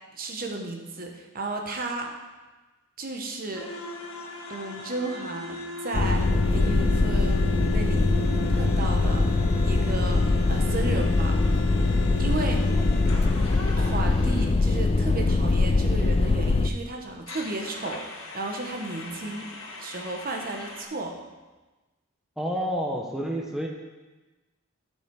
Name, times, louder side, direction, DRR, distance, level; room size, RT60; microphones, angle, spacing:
voice 1, 0.2-2.1 3.0-3.7 4.5-8.2 8.5-11.4 12.2-12.6 13.8-21.2, right 2 dB, 45° right, 2 dB, 1.2 m, -34 dB
sound 1, 3.5-14.4 17.3-20.8, equal, 85° left, 1.5 m, -38 dB
sound 2, 5.9-16.7, left 3 dB, 30° left, 0.4 m, -22 dB
voice 2, 22.4-23.7, equal, ahead, -1 dB, 0.8 m, -29 dB
13.0 x 5.5 x 4.7 m, 1.2 s
head